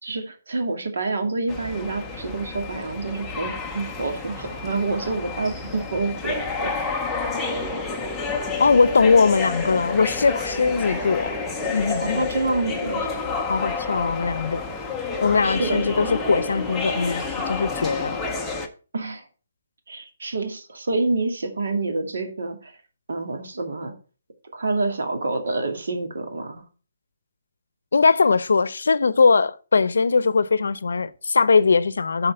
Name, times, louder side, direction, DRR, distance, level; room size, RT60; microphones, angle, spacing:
voice 1, 0.0-6.7 12.0-13.1 15.4-16.2 18.9-19.2 19.9-22.8 23.1-23.9 24.5-26.6, right 3 dB, 65° right, 2.3 m, -27 dB
sound 1, 1.5-18.7, left 4 dB, 5° left, 0.6 m, -29 dB
voice 2, 8.6-11.3 11.7-12.2 13.5-14.6 15.2-18.2 27.9-32.3, left 4 dB, 80° left, 0.7 m, -20 dB
7.8 x 4.3 x 6.6 m
hypercardioid pair, 180°, 0 cm